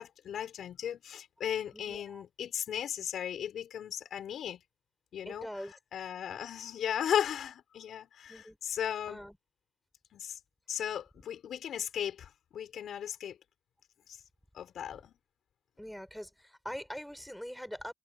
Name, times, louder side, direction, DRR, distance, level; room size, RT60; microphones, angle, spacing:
voice 1, 0.0-4.6 5.1-5.5 5.9-9.2 10.1-10.4 10.7-13.4 14.5-15.2, left 9 dB, 65° left, 5.8 m, -36 dB
voice 2, 1.7-2.3 5.3-5.8 8.3-8.6 9.1-9.4 15.8-17.9, equal, ahead, 5.4 m, -43 dB
cardioid pair, 90°, 0 cm